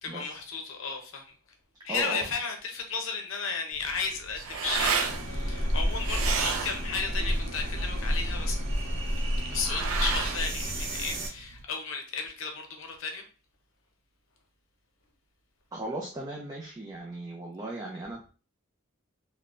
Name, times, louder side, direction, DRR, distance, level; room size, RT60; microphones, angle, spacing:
voice 1, 0.0-1.3 1.8-8.6 9.4-13.3, left 5 dB, 75° left, 0.7 m, -34 dB
voice 2, 1.9-2.3 15.7-18.3, right 2 dB, 20° right, 0.4 m, -37 dB
sound 1, 3.7-11.6, right 5 dB, 85° right, 0.4 m, -33 dB
sound 2, 5.0-11.3, equal, 60° right, 0.8 m, -30 dB
3.7 x 2.1 x 2.5 m
head